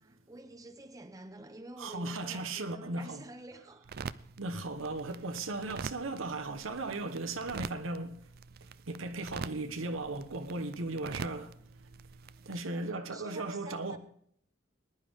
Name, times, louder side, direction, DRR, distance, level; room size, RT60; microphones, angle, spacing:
voice 1, 0.0-3.9 12.4-14.0, right 2 dB, 20° right, 0.9 m, -49 dB
voice 2, 1.8-3.2 4.4-8.2 8.6-11.9 12.4-14.0, right 2 dB, 85° right, 1.1 m, -37 dB
sound 1, 3.8-12.6, right 5 dB, 50° right, 0.4 m, -45 dB
20.0 x 10.5 x 3.6 m
head